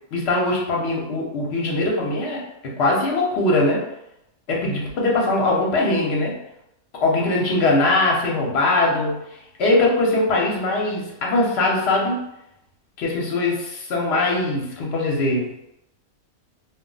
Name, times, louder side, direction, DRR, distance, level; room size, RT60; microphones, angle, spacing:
voice 1, 0.1-3.8 4.5-6.4 7.0-9.2 9.6-12.2 13.0-15.5, left 2 dB, 55° left, -2 dB, 0.8 m, -21 dB
2.4 x 2.0 x 3.7 m, 0.83 s
omnidirectional pair, 1.5 m